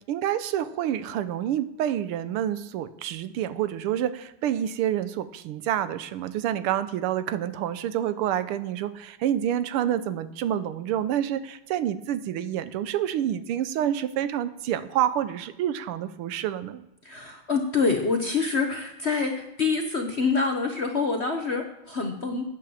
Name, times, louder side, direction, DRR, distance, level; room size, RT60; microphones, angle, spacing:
voice 1, 0.1-16.8, right 11 dB, 85° right, 13 dB, 1.6 m, -28 dB
voice 2, 17.0-22.5, left 4 dB, 45° left, 3 dB, 0.9 m, -26 dB
10.5 x 8.5 x 7.0 m, 0.91 s
omnidirectional pair, 2.4 m